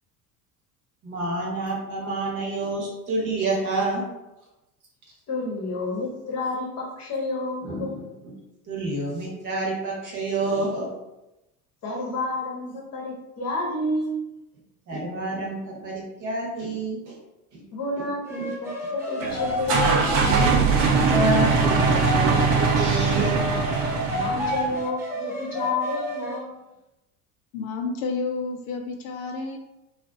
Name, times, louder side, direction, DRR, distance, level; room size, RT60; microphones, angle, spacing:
voice 1, 1.0-4.0 7.6-8.0 8.7-10.9 14.9-17.2 17.5-17.6 18.0-18.1 18.4-18.5 19.2-19.3 20.0-20.2 20.4-20.6 21.0-23.5, right 2 dB, 40° right, -3 dB, 1.0 m, -28 dB
voice 2, 5.3-7.9 11.8-14.3 17.7-20.2 22.2-22.4 22.8-23.0 23.5-23.6 24.1-26.6, left 2 dB, 35° left, -2 dB, 0.9 m, -30 dB
sound 1, 18.3-22.8 23.2-26.4, equal, 5° right, 0.8 m, -30 dB
sound 2, 19.2-24.8, right 4 dB, 60° right, 0.7 m, -22 dB
voice 3, 27.5-29.6, left 4 dB, 60° left, 2 dB, 0.5 m, -30 dB
2.4 x 2.4 x 2.4 m, 0.95 s
hypercardioid pair, 75°, 46 cm